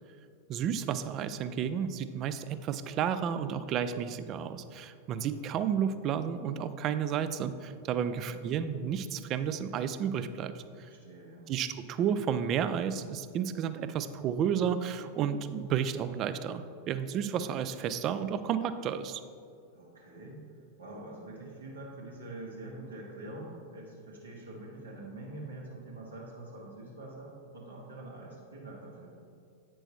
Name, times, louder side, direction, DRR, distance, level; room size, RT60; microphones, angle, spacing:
voice 1, 0.5-10.9 11.5-19.2, right 8 dB, 35° right, 12 dB, 0.3 m, -32 dB
voice 2, 8.0-8.5 10.7-11.5 19.7-20.4 20.8-29.2, right 2 dB, 75° right, -3 dB, 1.6 m, -45 dB
8.7 x 6.2 x 3.0 m, 2.4 s
figure-of-eight pair, 90°, 0 cm